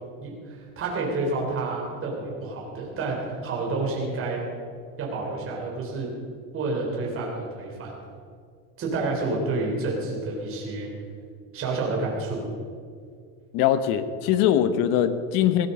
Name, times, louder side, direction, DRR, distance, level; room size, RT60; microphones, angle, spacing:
voice 1, 0.2-4.4 5.0-6.1 6.5-7.9 8.8-10.9 11.5-12.4, right 3 dB, 30° right, -2 dB, 3.8 m, -29 dB
voice 2, 13.5-15.7, left 10 dB, 50° left, 11 dB, 1.2 m, -22 dB
18.0 x 11.5 x 5.5 m, 2.1 s
supercardioid pair, 140°, 43 cm